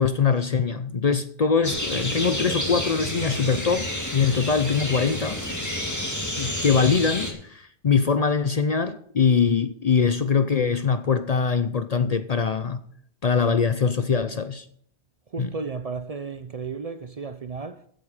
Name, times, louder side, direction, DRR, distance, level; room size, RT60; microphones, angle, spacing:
voice 1, 0.0-5.4 6.4-12.8 13.2-14.7 15.4-15.5, left 5 dB, 45° left, 0.6 m, -23 dB
sound 1, 1.6-7.3, left 1 dB, 15° left, 2.1 m, -30 dB
voice 2, 15.3-17.9, right 4 dB, 45° right, 0.6 m, -34 dB
14.0 x 8.3 x 4.9 m
omnidirectional pair, 1.1 m